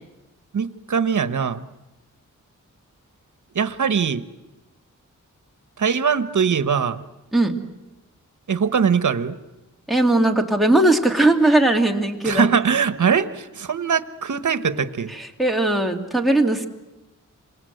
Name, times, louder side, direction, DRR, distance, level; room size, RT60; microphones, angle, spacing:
voice 1, 0.5-1.7 3.5-4.2 5.8-7.0 8.5-9.4 12.2-15.1, right 6 dB, 70° right, 11 dB, 1.2 m, -21 dB
voice 2, 9.9-12.5 15.2-16.7, right 2 dB, ahead, 3 dB, 2.3 m, -19 dB
27.5 x 26.0 x 8.0 m, 1.0 s
wide cardioid pair, 140°, 31 cm